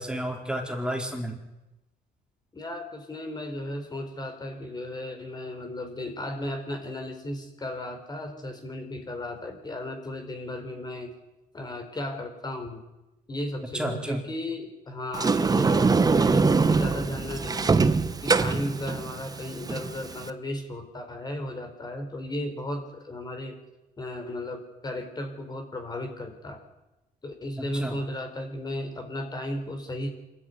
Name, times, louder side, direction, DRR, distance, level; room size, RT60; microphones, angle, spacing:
voice 1, 0.0-1.4 13.7-14.2 27.6-28.0, right 1 dB, 5° right, 2 dB, 4.5 m, -31 dB
voice 2, 2.5-11.1 11.5-12.8 13.3-23.6 24.0-26.6 27.2-30.1, left 1 dB, 25° left, 5 dB, 4.3 m, -35 dB
Sliding door, 15.1-20.3, right 4 dB, 20° right, 1.1 m, -23 dB
25.5 x 14.0 x 9.7 m, 0.99 s
cardioid pair, 110°, 17 cm